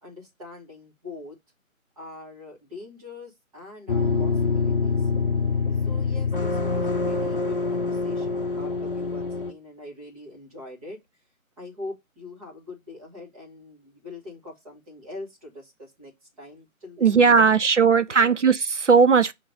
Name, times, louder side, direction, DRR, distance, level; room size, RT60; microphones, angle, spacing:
voice 1, 0.0-1.4 2.0-5.1 5.8-11.0 11.6-17.3 17.8-18.3, left 2 dB, 25° right, 2.1 m, -43 dB
sound 1, 3.9-9.5, left 4 dB, 40° left, 0.8 m, -25 dB
voice 2, 17.0-19.3, right 5 dB, 55° right, 0.6 m, -18 dB
6.6 x 3.1 x 4.9 m
figure-of-eight pair, 150°, 42 cm